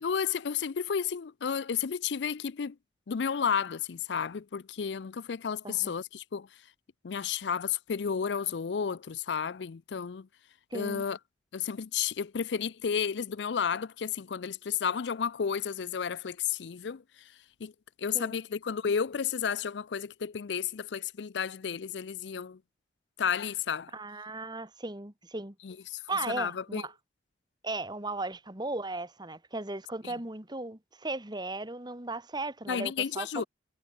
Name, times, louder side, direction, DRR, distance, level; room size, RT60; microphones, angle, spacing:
voice 1, 0.0-2.8 3.1-6.5 7.0-10.3 10.7-11.2 11.5-17.0 17.6-17.7 18.0-22.6 23.2-23.9 25.6-26.0 26.3-26.8 30.0-30.1 32.7-33.4, left 7 dB, 80° left, 0.5 m, -32 dB
voice 2, 10.7-11.0 18.1-18.4 23.9-25.5 26.1-26.9 27.6-33.5, right 2 dB, 25° right, 2.5 m, -36 dB
head